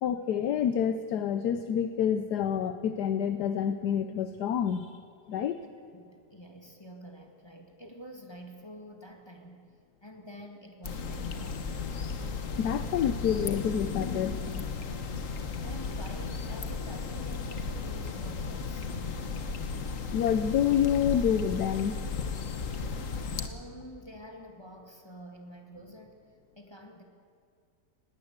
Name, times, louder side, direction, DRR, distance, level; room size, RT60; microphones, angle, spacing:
voice 1, 0.0-5.0 5.3-5.6 12.6-14.8 20.1-22.0, left 8 dB, 75° left, 10 dB, 1.3 m, -28 dB
voice 2, 5.6-9.6 10.0-11.6 15.6-19.4 23.3-27.0, equal, 15° left, 2 dB, 2.1 m, -48 dB
sound 1, 10.8-23.5, left 4 dB, 55° left, 1.6 m, -35 dB
20.0 x 18.0 x 8.1 m, 2.3 s
omnidirectional pair, 1.8 m